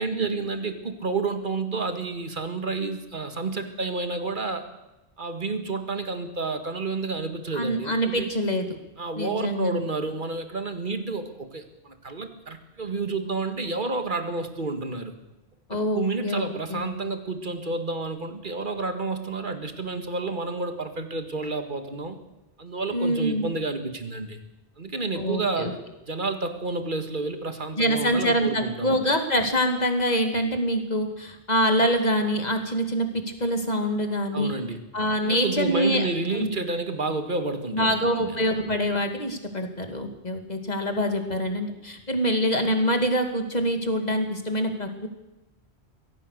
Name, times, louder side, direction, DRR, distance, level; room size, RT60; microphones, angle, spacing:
voice 1, 0.0-4.7 5.2-8.3 9.0-15.1 15.7-22.2 22.6-24.4 24.8-25.8 26.1-29.0 34.3-34.8 35.2-38.4, right 3 dB, 50° right, 8 dB, 2.1 m, -30 dB
voice 2, 7.6-8.7 9.2-9.8 15.7-16.8 22.9-23.5 25.1-25.7 27.8-34.5 34.9-36.0 36.3-36.5 37.7-45.1, equal, 40° left, 5 dB, 2.7 m, -25 dB
23.0 x 17.0 x 6.7 m, 0.99 s
omnidirectional pair, 1.1 m